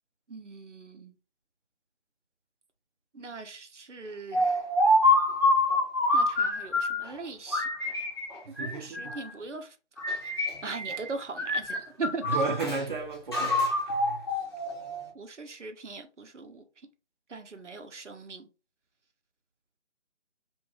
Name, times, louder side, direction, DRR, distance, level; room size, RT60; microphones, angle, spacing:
voice 1, 0.3-1.1 3.1-4.6 6.1-7.7 8.5-9.8 10.6-12.4 15.1-16.6 17.3-18.5, right 4 dB, 80° right, 0.8 m, -40 dB
sound 1, 4.3-7.1 7.5-9.3 10.0-11.1 11.4-12.8 13.3-15.1, left 1 dB, 20° left, 0.6 m, -26 dB
voice 2, 8.6-9.2 12.2-14.2, right 3 dB, 45° right, 0.6 m, -33 dB
3.1 x 2.5 x 2.3 m
figure-of-eight pair, 155°, 35 cm